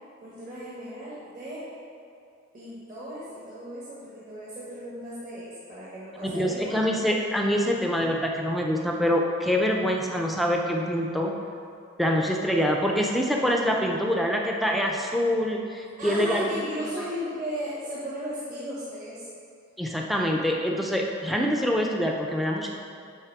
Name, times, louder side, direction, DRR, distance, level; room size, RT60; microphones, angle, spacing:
voice 1, 0.2-1.7 2.5-7.1 16.0-19.2, equal, 40° right, -9 dB, 1.4 m, -36 dB
voice 2, 6.2-11.3 12.0-16.6 17.0-17.1 19.8-22.7, equal, ahead, 1 dB, 0.4 m, -25 dB
9.2 x 3.5 x 4.7 m, 2.4 s
head